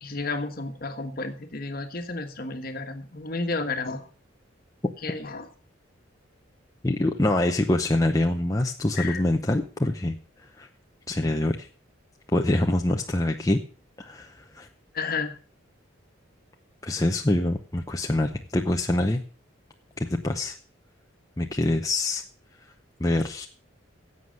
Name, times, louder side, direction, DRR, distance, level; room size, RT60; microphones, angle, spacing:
voice 1, 0.0-4.1 5.0-5.5 9.0-9.2 14.9-15.3, left 3 dB, 50° left, 7 dB, 1.4 m, -32 dB
voice 2, 6.8-10.7 11.1-11.7 12.3-13.6 14.0-14.7 16.8-19.2 20.0-20.5 21.4-22.2 23.0-23.5, left 1 dB, 15° left, 3 dB, 0.7 m, -25 dB
11.0 x 7.9 x 6.4 m, 0.40 s
head